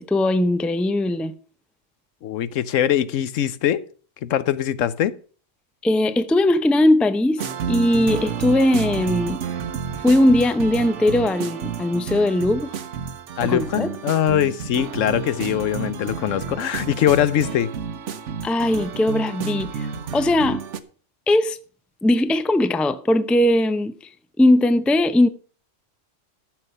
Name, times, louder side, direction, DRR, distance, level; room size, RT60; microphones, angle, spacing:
voice 1, 0.0-1.4 5.8-9.4 10.0-12.7 13.4-13.9 18.4-20.6 21.3-21.6 22.0-23.9 24.4-25.3, left 1 dB, ahead, 0.4 m, -19 dB
voice 2, 2.2-3.8 4.2-5.1 13.4-17.7, left 10 dB, 85° left, 1.1 m, -22 dB
sound 1, 7.4-20.8, right 7 dB, 75° right, 1.2 m, -30 dB
13.0 x 7.2 x 5.5 m
omnidirectional pair, 1.3 m